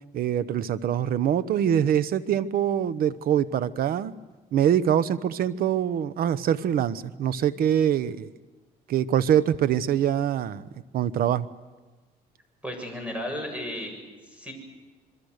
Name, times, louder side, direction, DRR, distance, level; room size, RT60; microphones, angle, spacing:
voice 1, 0.1-4.1 4.5-8.3 8.9-10.7 10.9-11.5, right 9 dB, 60° right, 16 dB, 1.0 m, -24 dB
voice 2, 12.6-14.0 14.2-14.5, left 1 dB, 5° right, 4 dB, 7.2 m, -34 dB
26.5 x 22.5 x 6.6 m, 1.2 s
cardioid pair, 110°, 17 cm